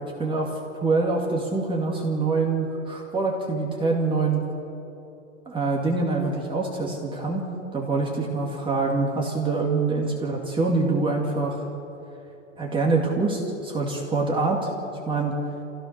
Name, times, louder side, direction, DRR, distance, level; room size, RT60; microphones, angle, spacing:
voice 1, 0.2-4.4 5.5-11.6 12.6-14.7 15.1-15.4, right 3 dB, 10° right, -1 dB, 2.1 m, -25 dB
26.5 x 16.0 x 6.6 m, 2.8 s
hypercardioid pair, 145°, 39 cm